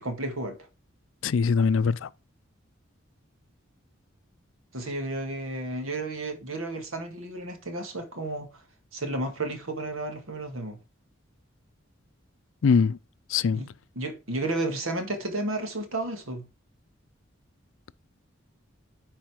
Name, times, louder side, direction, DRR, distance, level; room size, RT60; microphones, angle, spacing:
voice 1, 0.0-0.6 4.7-8.6 8.9-10.8 13.5-13.7 14.0-16.4, right 2 dB, 85° right, 1.9 m, -32 dB
voice 2, 1.2-2.1 12.6-13.0 13.3-13.6, left 5 dB, 75° left, 0.4 m, -22 dB
10.5 x 4.5 x 4.8 m
head